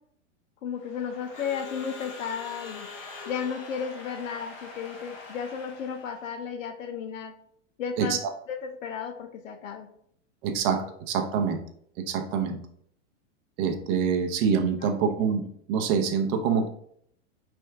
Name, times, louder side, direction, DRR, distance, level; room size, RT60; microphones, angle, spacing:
voice 1, 0.6-2.9 3.3-7.3 7.8-8.2 8.5-9.9 14.8-15.1, left 7 dB, 85° left, 6 dB, 0.7 m, -34 dB
Crowd / Alarm, 0.8-6.3, left 3 dB, 30° left, 0.9 m, -43 dB
voice 2, 10.4-11.6 12.0-12.6 13.6-16.7, right 6 dB, 40° right, 5 dB, 0.7 m, -26 dB
4.3 x 3.4 x 3.5 m, 0.69 s
hypercardioid pair, 140°, 38 cm